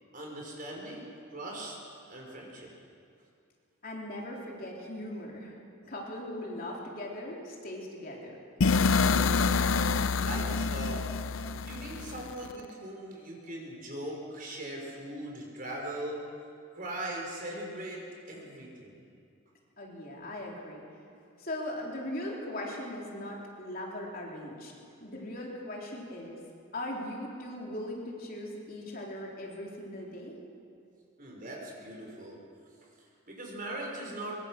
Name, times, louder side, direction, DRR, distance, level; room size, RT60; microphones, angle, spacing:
voice 1, 0.1-1.8 2.1-2.7 8.9-9.9 10.2-11.1 11.6-16.2 16.7-18.0 18.3-19.0 31.2-32.4 33.3-34.4, right 1 dB, 40° right, -1 dB, 5.3 m, -40 dB
voice 2, 3.8-8.4 19.8-20.8 21.4-24.7 25.0-26.4 26.7-30.4, left 1 dB, 45° left, -2 dB, 3.5 m, -39 dB
sound 1, 8.6-12.5, left 4 dB, 70° left, 0.5 m, -27 dB
24.0 x 22.5 x 6.5 m, 2.4 s
head